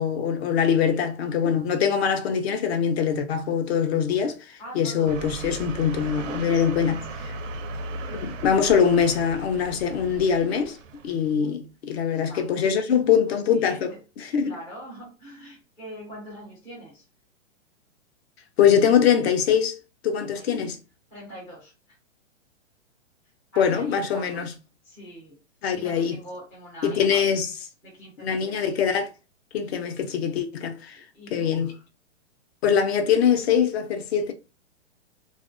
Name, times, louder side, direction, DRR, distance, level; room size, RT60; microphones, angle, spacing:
voice 1, 0.0-7.3 8.1-10.8 11.0-14.5 18.6-19.8 20.0-20.8 23.6-24.5 25.6-26.2 26.8-27.5 28.2-29.1 29.5-31.0 31.3-31.7 32.6-34.3, left 7 dB, 55° left, 0.5 m, -23 dB
voice 2, 4.6-5.8 6.1-7.1 11.3-11.6 12.1-12.6 13.2-14.0 14.4-17.0 20.2-20.7 21.1-22.0 23.5-24.5 24.8-25.4 25.7-27.2 27.8-28.7 31.1-31.8, equal, 5° left, 0.3 m, -44 dB
sound 1, 5.1-11.3, right 3 dB, 80° right, 0.6 m, -37 dB
2.5 x 2.1 x 2.4 m
hypercardioid pair, 150°, 38 cm